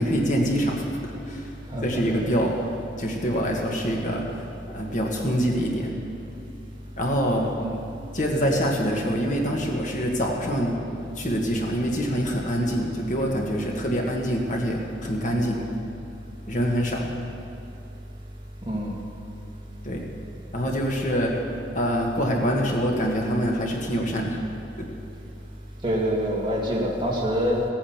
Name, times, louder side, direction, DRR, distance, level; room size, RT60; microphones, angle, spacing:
voice 1, 0.0-1.5 1.8-2.6 3.0-4.3 4.7-6.0 7.0-7.5 8.1-10.8 11.1-15.6 16.5-17.1 19.8-20.1 20.5-21.4 21.7-24.4 24.8-24.9, equal, 45° left, 0 dB, 1.6 m, -25 dB
voice 2, 1.7-2.4 7.6-7.8 18.7-19.0 25.8-27.6, equal, 25° right, -4 dB, 2.3 m, -26 dB
16.0 x 9.0 x 7.2 m, 2.6 s
head